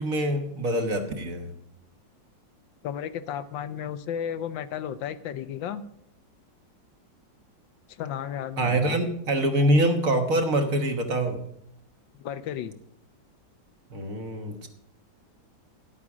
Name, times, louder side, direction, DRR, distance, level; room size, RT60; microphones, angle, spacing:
voice 1, 0.0-1.5 8.6-11.4 13.9-14.7, right 1 dB, 50° right, 5 dB, 1.6 m, -25 dB
voice 2, 2.8-5.8 7.9-9.0 12.2-12.7, left 9 dB, 75° left, 12 dB, 1.3 m, -33 dB
11.0 x 8.5 x 6.1 m, 0.73 s
omnidirectional pair, 2.1 m